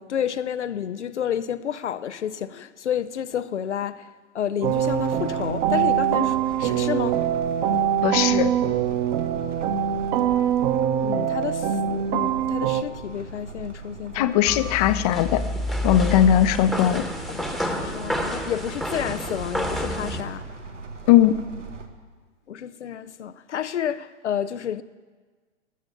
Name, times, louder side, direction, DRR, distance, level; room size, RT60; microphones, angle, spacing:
voice 1, 0.0-7.2 11.0-14.3 17.3-20.5 22.5-24.8, left 9 dB, 75° left, 0.6 m, -30 dB
sound 1, 4.6-12.8, right 9 dB, 30° right, 0.9 m, -23 dB
sound 2, 4.6-21.9, right 3 dB, 85° right, 1.6 m, -39 dB
voice 2, 8.0-8.5 14.1-15.4 15.8-17.1 21.1-21.4, left 11 dB, 35° left, 0.6 m, -19 dB
sound 3, 14.5-20.2, left 1 dB, ahead, 1.0 m, -29 dB
19.5 x 6.9 x 6.8 m
figure-of-eight pair, 110°, 36 cm